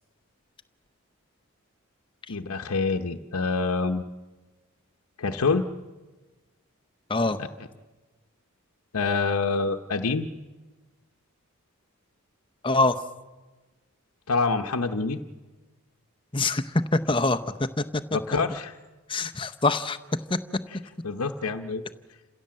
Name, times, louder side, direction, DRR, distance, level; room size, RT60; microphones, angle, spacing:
voice 1, 2.3-4.0 5.2-5.6 8.9-10.3 14.3-15.2 18.1-18.8 21.0-21.8, left 4 dB, 85° left, 5 dB, 0.9 m, -26 dB
voice 2, 12.6-13.0 16.3-17.8 19.1-20.0 20.3-20.4, left 3 dB, 25° left, 10 dB, 0.8 m, -24 dB
28.5 x 16.0 x 7.6 m, 1.3 s
head